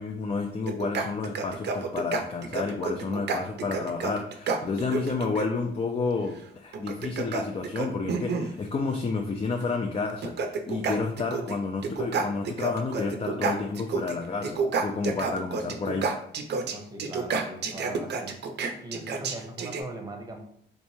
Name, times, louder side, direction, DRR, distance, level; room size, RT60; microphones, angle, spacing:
voice 1, 0.0-10.3 10.7-16.1, left 4 dB, 30° left, 3 dB, 0.4 m, -30 dB
sound 1, 0.7-5.5 6.7-8.6 9.6-9.7 10.1-11.6 11.8-14.2 14.4-19.8, right 4 dB, 60° right, 0.5 m, -30 dB
voice 2, 16.7-18.4 18.8-20.4, right 2 dB, 20° right, 3 dB, 0.7 m, -40 dB
3.4 x 3.0 x 2.7 m, 0.69 s
cardioid pair, 90°, 20 cm